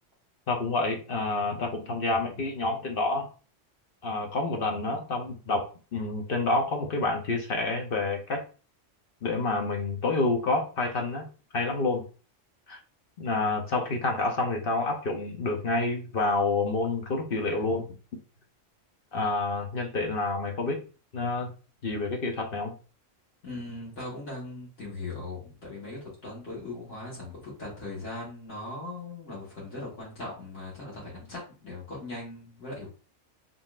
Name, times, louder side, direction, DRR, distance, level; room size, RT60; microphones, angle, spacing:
voice 1, 0.5-3.3 4.0-8.4 9.2-11.3 11.5-12.0 12.7-12.8 13.2-17.9 19.1-20.8 21.1-21.5 21.8-22.7, left 3 dB, 50° left, 2 dB, 0.9 m, -28 dB
voice 2, 23.4-32.9, left 2 dB, 70° left, -6 dB, 1.9 m, -39 dB
3.9 x 3.7 x 2.4 m, 0.36 s
omnidirectional pair, 1.3 m